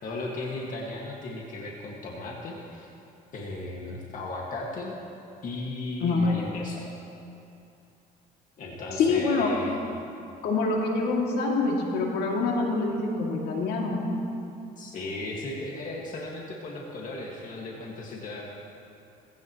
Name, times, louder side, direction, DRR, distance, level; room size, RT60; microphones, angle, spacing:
voice 1, 0.0-2.9 3.3-5.0 5.4-6.9 8.6-9.8 14.8-18.4, left 2 dB, 50° left, -2 dB, 1.9 m, -36 dB
voice 2, 9.0-9.5 10.4-14.0, left 3 dB, 75° left, -1 dB, 2.5 m, -25 dB
18.5 x 16.5 x 3.1 m, 2.7 s
cardioid pair, 110°, 17 cm